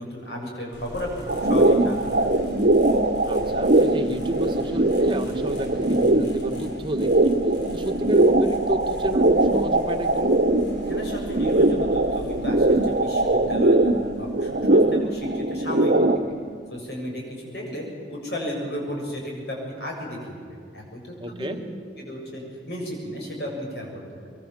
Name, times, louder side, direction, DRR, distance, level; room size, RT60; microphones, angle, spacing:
voice 1, 0.0-2.4 10.9-15.9 16.7-21.0 21.3-21.6 22.0-23.9, equal, 65° left, -1 dB, 7.2 m, -34 dB
sound 1, 0.7-16.8, equal, 85° left, 5.1 m, -41 dB
sound 2, 1.3-16.2, right 2 dB, 55° right, 1.2 m, -21 dB
voice 2, 3.2-7.3 7.7-10.4 21.2-21.6, right 1 dB, 25° right, 6 dB, 1.5 m, -30 dB
23.5 x 23.0 x 7.6 m, 2.3 s
head